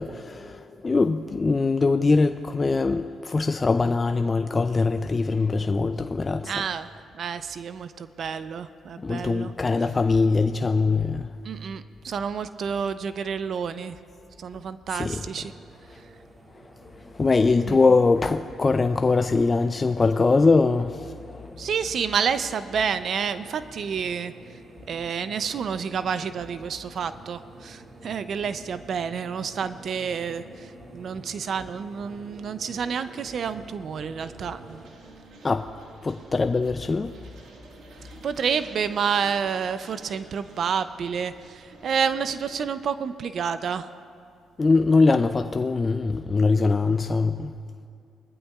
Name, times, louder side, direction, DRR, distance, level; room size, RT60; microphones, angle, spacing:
voice 1, 0.0-6.6 9.0-11.3 14.9-15.3 16.8-21.6 35.4-35.7 36.0-37.1 44.6-47.5, left 3 dB, 30° left, 0.4 m, -22 dB
voice 2, 6.5-6.9 7.1-9.5 11.4-14.0 14.4-15.5 17.7-17.8 21.6-24.3 24.9-34.8 38.2-43.9, right 6 dB, 60° right, 0.5 m, -29 dB
sound 1, 15.3-34.9, right 2 dB, 30° right, 1.6 m, -48 dB
sound 2, 34.3-42.7, right 3 dB, 75° right, 1.6 m, -50 dB
20.0 x 14.5 x 2.4 m
cardioid pair, 90°, 0 cm